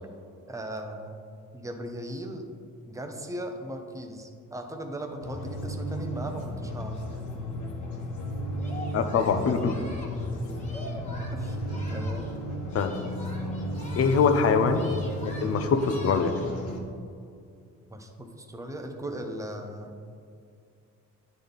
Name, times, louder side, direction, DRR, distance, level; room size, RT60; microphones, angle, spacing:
voice 1, 0.5-1.1 1.5-2.5 2.9-7.0 11.3-12.3 15.7-15.9 17.9-20.0, right 1 dB, 10° right, 4 dB, 0.7 m, -38 dB
sound 1, 5.2-16.8, equal, 80° left, 1.2 m, -34 dB
Singing, 8.6-12.4 12.7-14.4 14.7-16.6, left 1 dB, 25° left, 1.5 m, -45 dB
voice 2, 8.9-9.7 12.7-12.9 14.0-14.9 15.2-16.3, left 5 dB, 50° left, 7 dB, 0.6 m, -23 dB
9.5 x 4.0 x 3.5 m, 2.4 s
cardioid pair, 90°, 30 cm